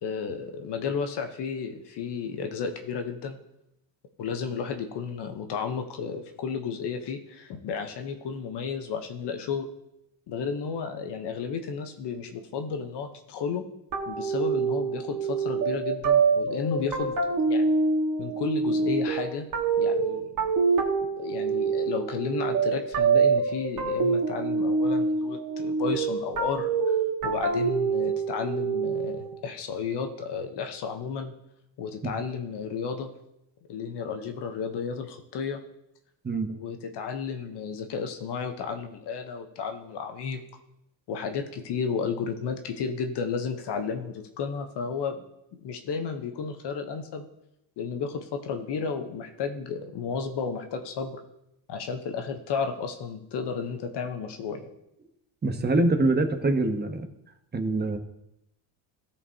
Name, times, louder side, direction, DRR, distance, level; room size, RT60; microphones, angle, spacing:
voice 1, 0.0-3.4 4.2-9.7 10.3-13.7 14.1-17.2 17.5-17.7 18.2-19.5 19.8-20.5 21.2-26.7 27.2-31.3 31.8-33.1 33.7-35.6 36.5-40.4 41.1-45.2 45.6-47.2 47.8-51.2 51.7-54.6, left 6 dB, 55° left, 6 dB, 1.0 m, -32 dB
sound 1, 13.9-29.3, right 5 dB, 40° right, 1.6 m, -25 dB
voice 2, 55.4-57.0 57.5-58.0, right 2 dB, 20° right, 6 dB, 1.0 m, -24 dB
14.0 x 5.0 x 2.8 m, 0.83 s
supercardioid pair, 95°, 49 cm